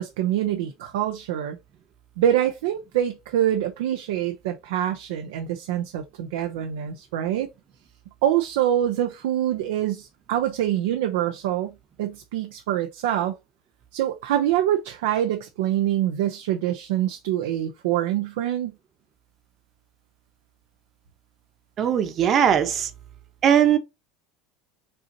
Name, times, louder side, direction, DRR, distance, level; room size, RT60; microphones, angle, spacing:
voice 1, 0.0-1.6 2.2-7.5 8.2-13.3 13.9-18.7, right 11 dB, 80° right, 0.6 m, -25 dB
voice 2, 21.8-22.9 23.4-23.8, right 9 dB, 40° right, 1.0 m, -19 dB
5.4 x 2.8 x 2.7 m
supercardioid pair, 120°, 0 cm